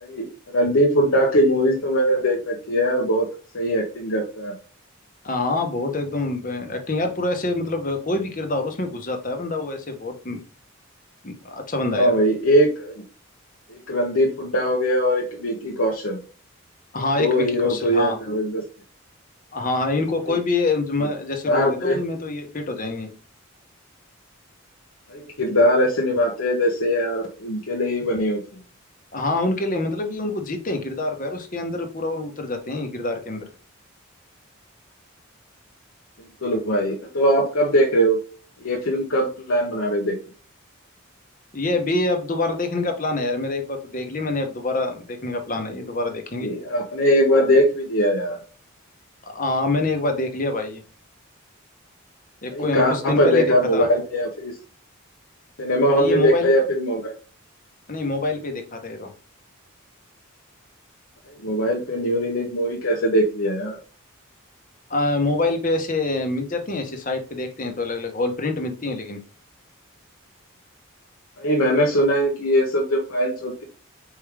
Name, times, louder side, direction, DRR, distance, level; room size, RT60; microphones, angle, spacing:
voice 1, 0.0-3.3 3.5-4.6 11.9-12.9 13.7-16.2 17.0-18.6 20.3-20.4 21.5-22.0 25.1-28.4 36.4-38.2 38.6-40.2 46.4-48.4 52.5-54.6 55.6-57.1 61.4-63.8 71.4-73.7, equal, 75° left, -1 dB, 0.9 m, -21 dB
voice 2, 5.2-10.4 11.2-12.2 16.9-18.2 19.5-23.1 29.1-33.4 41.5-46.5 49.3-50.8 52.4-53.9 55.9-56.5 57.9-59.1 64.9-69.2, left 2 dB, 40° left, 5 dB, 0.9 m, -26 dB
4.5 x 3.2 x 3.5 m, 0.38 s
head